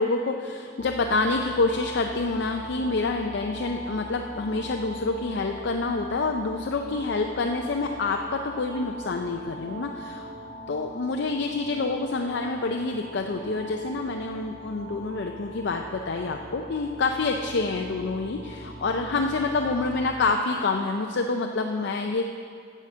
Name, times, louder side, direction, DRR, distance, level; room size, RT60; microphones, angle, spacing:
voice 1, 0.0-10.3 10.7-22.2, left 3 dB, 65° left, 3 dB, 0.5 m, -27 dB
sound 1, 0.8-20.3, right 1 dB, 60° right, 0.9 m, -41 dB
8.5 x 7.5 x 6.6 m, 2.3 s
head